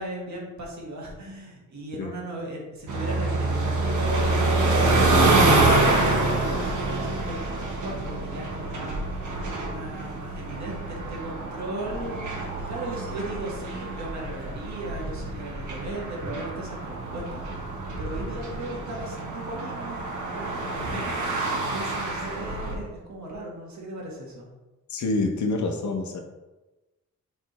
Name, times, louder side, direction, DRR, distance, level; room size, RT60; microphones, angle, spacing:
voice 1, 0.0-7.4 7.8-9.0 9.7-17.4 18.0-24.5, right 1 dB, 70° right, -2 dB, 1.6 m, -37 dB
sound 1, 2.9-22.7, right 2 dB, 85° right, 1.2 m, -26 dB
voice 2, 24.9-26.2, left 3 dB, 70° left, 3 dB, 0.9 m, -27 dB
6.5 x 3.5 x 4.2 m, 1.1 s
wide cardioid pair, 165°, 30 cm